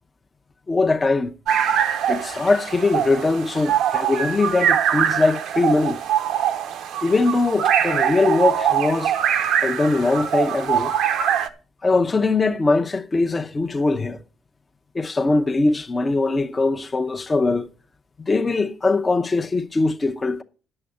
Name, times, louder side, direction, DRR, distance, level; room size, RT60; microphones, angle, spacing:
voice 1, 0.7-1.3 2.1-6.0 7.0-9.1 9.6-10.9 11.8-14.2 14.9-17.7 18.2-20.4, left 3 dB, 30° left, 0.8 m, -21 dB
sound 1, 1.5-11.5, right 9 dB, 85° right, 0.9 m, -23 dB
9.9 x 6.9 x 6.6 m
cardioid pair, 90°, 0 cm